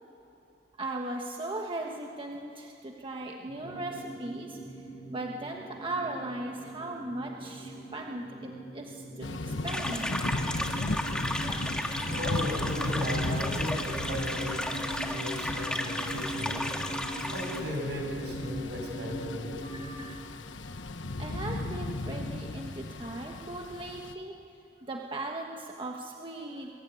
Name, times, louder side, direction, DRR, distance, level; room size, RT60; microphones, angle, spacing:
voice 1, 0.8-4.8 5.1-10.3 19.6-20.2 21.2-24.4 24.8-26.7, right 2 dB, 30° right, 1 dB, 1.3 m, -38 dB
sound 1, 3.5-20.1, equal, 25° left, 5.6 m, -41 dB
Thunder / Rain, 9.2-24.1, left 2 dB, 85° left, 1.2 m, -36 dB
sound 2, 9.7-17.6, left 1 dB, 5° left, 1.8 m, -34 dB
voice 2, 12.0-16.6 17.3-19.7, equal, 65° right, 1 dB, 7.1 m, -36 dB
26.0 x 23.5 x 9.5 m, 2.7 s
head